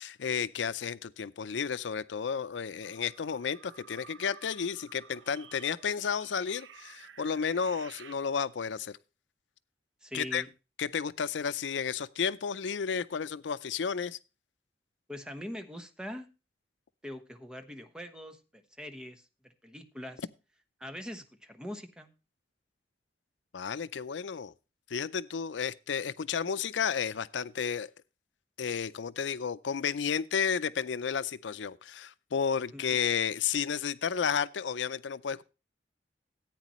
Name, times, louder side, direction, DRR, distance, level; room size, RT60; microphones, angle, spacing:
voice 1, 0.0-9.0 10.1-10.4 10.8-14.2 23.5-24.5 24.9-27.9 28.6-35.4, left 6 dB, 85° left, 0.5 m, -32 dB
sound 1, 2.8-8.2, right 7 dB, 90° right, 0.7 m, -53 dB
voice 2, 10.0-10.5 15.1-16.3 17.0-20.2 20.8-22.1 32.7-32.8, equal, 5° right, 1.1 m, -43 dB
14.5 x 9.1 x 3.0 m
head